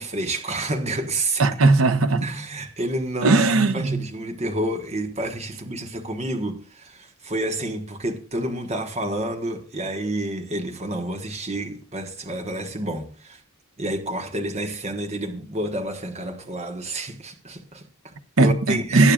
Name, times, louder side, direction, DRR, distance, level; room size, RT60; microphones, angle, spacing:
voice 1, 0.0-1.4 2.2-3.4 3.7-13.4 13.8-19.1, right 1 dB, 30° right, 1.4 m, -29 dB
voice 2, 1.4-2.3 3.2-4.1 18.4-19.1, right 3 dB, 70° right, 0.9 m, -18 dB
19.0 x 8.8 x 2.4 m
head